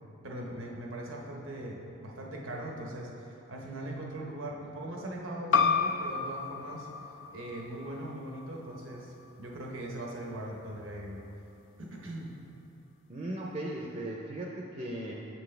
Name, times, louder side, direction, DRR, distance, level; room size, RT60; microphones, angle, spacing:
voice 1, 0.2-11.2 11.8-12.3, right 1 dB, 85° right, -1 dB, 1.0 m, -40 dB
sound 1, 5.5-10.7, left 5 dB, 70° left, 0.4 m, -32 dB
voice 2, 13.1-15.1, right 1 dB, 35° right, -2 dB, 0.5 m, -37 dB
7.5 x 6.2 x 3.3 m, 2.7 s
head